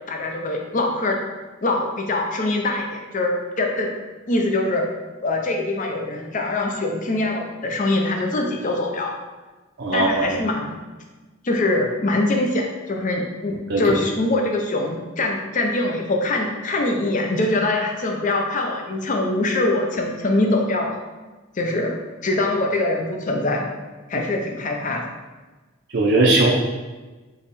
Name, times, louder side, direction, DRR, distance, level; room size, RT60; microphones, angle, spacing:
voice 1, 0.1-1.2 1.6-3.9 4.3-4.9 5.2-9.1 9.9-10.8 11.4-21.0 21.6-22.0 22.2-23.7 24.1-25.1, left 2 dB, 40° left, 2 dB, 0.6 m, -23 dB
voice 2, 9.8-10.4 13.7-13.8 24.1-24.2 25.9-26.5, right 2 dB, 55° right, -3 dB, 0.6 m, -19 dB
4.0 x 3.0 x 4.1 m, 1.2 s
head